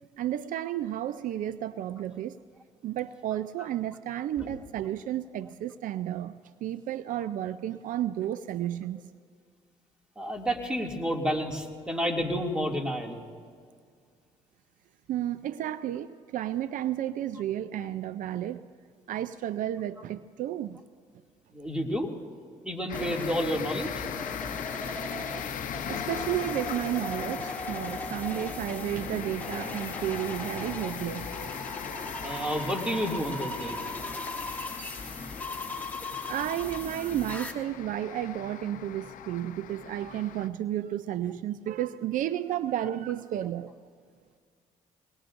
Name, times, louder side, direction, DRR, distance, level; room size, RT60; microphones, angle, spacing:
voice 1, 0.2-2.4 2.8-9.1 15.1-18.7 19.1-20.8 24.8-24.9 25.2-25.3 25.9-31.5 36.3-43.7, right 12 dB, 70° right, 14 dB, 0.4 m, -32 dB
voice 2, 10.2-13.2 21.5-22.1 22.6-24.0 32.2-33.8, equal, 5° right, 1 dB, 2.4 m, -30 dB
sound 1, 22.9-40.5, left 10 dB, 70° left, 0.7 m, -40 dB
sound 2, 22.9-37.5, left 2 dB, 10° left, 2.1 m, -38 dB
23.0 x 19.0 x 2.6 m, 2.1 s
supercardioid pair, 65°, 14 cm